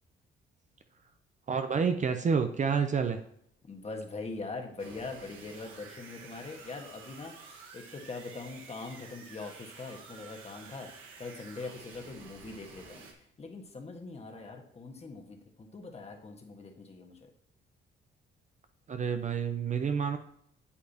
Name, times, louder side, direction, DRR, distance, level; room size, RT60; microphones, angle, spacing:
voice 1, 1.5-3.2 18.9-20.2, right 6 dB, 40° right, 7 dB, 0.7 m, -29 dB
voice 2, 3.6-10.9 11.2-17.3, left 3 dB, 30° left, 3 dB, 1.5 m, -42 dB
sound 1, 4.8-13.1, right 5 dB, 90° right, 1.3 m, -50 dB
8.4 x 7.6 x 2.9 m, 0.71 s
cardioid pair, 90°, 20 cm